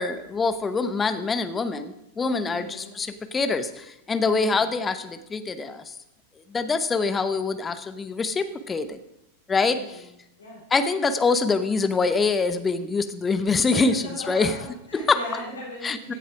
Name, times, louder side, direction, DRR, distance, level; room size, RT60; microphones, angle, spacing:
voice 1, 0.0-5.9 6.5-9.0 9.5-10.0 10.7-14.0 14.3-14.5 14.9-15.2 15.8-16.1, left 4 dB, 15° left, 11 dB, 0.9 m, -25 dB
voice 2, 2.5-3.0 4.3-4.7 9.7-10.1 10.4-10.6 13.7-16.2, left 1 dB, 75° left, -3 dB, 3.9 m, -38 dB
16.0 x 7.0 x 4.8 m, 0.85 s
figure-of-eight pair, 90°, 0 cm